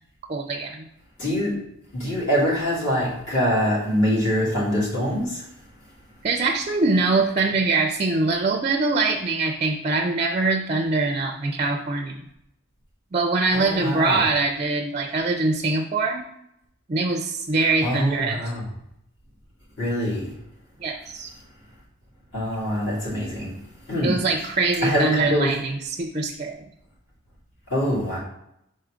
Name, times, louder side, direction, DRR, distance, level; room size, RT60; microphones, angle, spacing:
voice 1, 0.3-0.8 6.2-12.2 13.1-16.2 16.9-18.4 20.8-21.3 24.0-26.6, right 3 dB, 30° right, 4 dB, 0.4 m, -23 dB
voice 2, 1.2-1.5 1.9-5.4 13.5-14.2 17.8-18.6 19.8-20.3 22.3-23.5 23.9-24.2 24.8-25.5 27.7-28.2, equal, 55° left, -7 dB, 2.4 m, -24 dB
4.6 x 4.4 x 5.0 m, 0.76 s
head